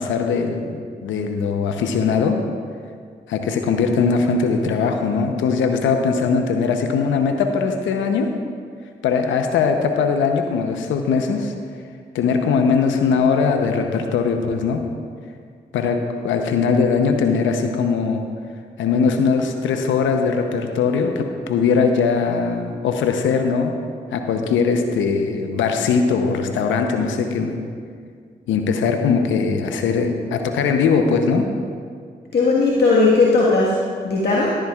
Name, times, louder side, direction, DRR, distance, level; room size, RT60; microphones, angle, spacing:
voice 1, 0.0-2.4 3.3-8.3 9.0-11.5 12.1-14.8 15.7-18.3 18.8-23.7 24.1-27.6 28.5-31.5, left 5 dB, 85° left, 5 dB, 0.8 m, -20 dB
voice 2, 32.3-34.5, left 3 dB, 55° left, -5 dB, 1.6 m, -17 dB
13.5 x 13.0 x 2.4 m, 2.1 s
supercardioid pair, 40°, 19 cm